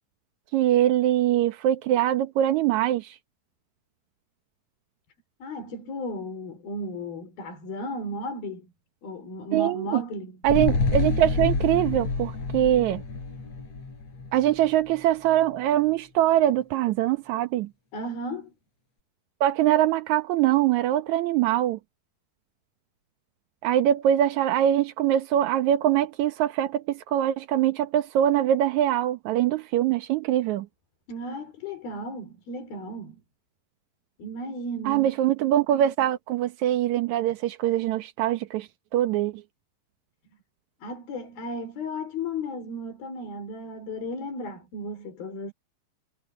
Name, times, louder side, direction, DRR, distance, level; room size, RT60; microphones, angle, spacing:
voice 1, 0.5-3.2 9.5-10.0 10.4-13.0 14.3-17.7 19.4-21.8 23.6-30.7 34.9-39.3, right 12 dB, 70° right, 2.0 m, -23 dB
voice 2, 5.4-8.7 9.0-10.4 17.9-18.5 31.1-33.2 34.2-35.1 40.8-45.5, left 1 dB, 80° left, 6.5 m, -34 dB
sound 1, 10.4-15.0 15.3-15.4, left 4 dB, 45° left, 6.3 m, -28 dB
omnidirectional pair, 4.2 m